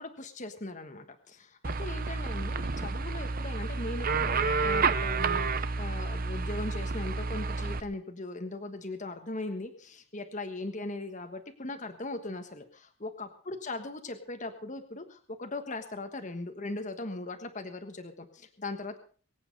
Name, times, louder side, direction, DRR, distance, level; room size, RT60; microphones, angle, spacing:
voice 1, 0.0-19.0, left 2 dB, 35° left, 6 dB, 1.4 m, -39 dB
sound 1, 1.6-7.8, right 4 dB, 45° right, 0.8 m, -30 dB
23.0 x 8.8 x 5.3 m, 0.42 s
head